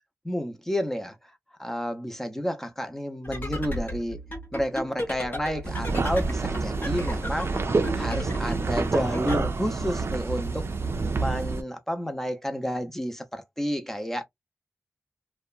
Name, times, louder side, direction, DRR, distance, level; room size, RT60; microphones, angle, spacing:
voice 1, 0.2-1.2 1.6-4.2 4.5-7.7 7.9-10.7 11.2-14.2, equal, 5° left, 0.6 m, -30 dB
sound 1, 3.2-9.4, equal, 40° left, 0.8 m, -34 dB
sound 2, 5.6-11.6, right 4 dB, 50° right, 0.4 m, -28 dB
2.8 x 2.2 x 2.3 m
wide cardioid pair, 85°, 5 cm